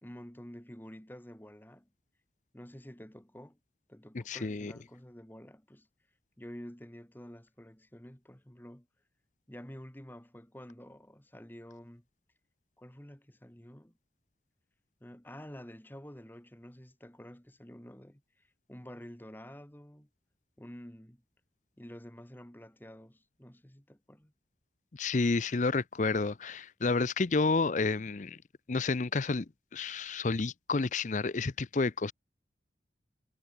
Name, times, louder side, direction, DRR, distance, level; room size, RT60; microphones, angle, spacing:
voice 1, 0.0-1.9 2.5-3.6 3.9-5.9 6.4-8.9 9.5-12.0 12.8-14.0 15.0-20.1 20.6-21.2 21.8-24.3, equal, 10° left, 1.6 m, -49 dB
voice 2, 4.1-4.7 24.9-28.4 28.7-32.1, left 3 dB, 45° left, 0.6 m, -30 dB
head